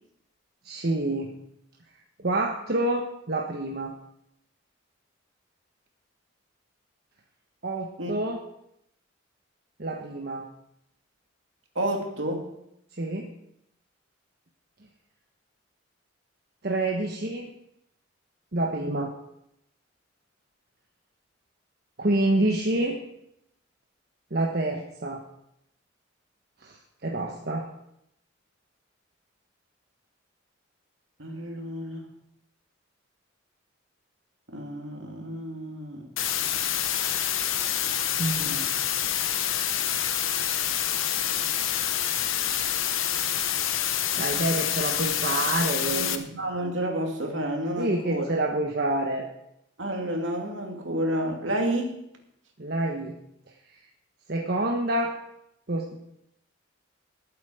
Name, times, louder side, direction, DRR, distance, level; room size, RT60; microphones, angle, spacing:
voice 1, 0.6-1.4 2.2-3.9 7.6-8.4 9.8-10.5 13.0-13.3 16.6-17.5 18.5-19.1 22.0-23.1 24.3-25.2 26.6-27.7 38.2-38.7 44.2-46.2 47.8-49.3 52.6-53.2 54.3-55.2 55.7-56.0, right 2 dB, 50° right, 1 dB, 1.3 m, -27 dB
voice 2, 11.7-12.5 31.2-32.1 34.5-36.1 38.4-38.7 45.9-48.2 49.8-52.0, right 1 dB, 70° right, 2 dB, 2.8 m, -30 dB
sound 1, 36.2-46.2, left 10 dB, 85° left, 1.1 m, -27 dB
20.5 x 8.4 x 5.0 m, 0.79 s
head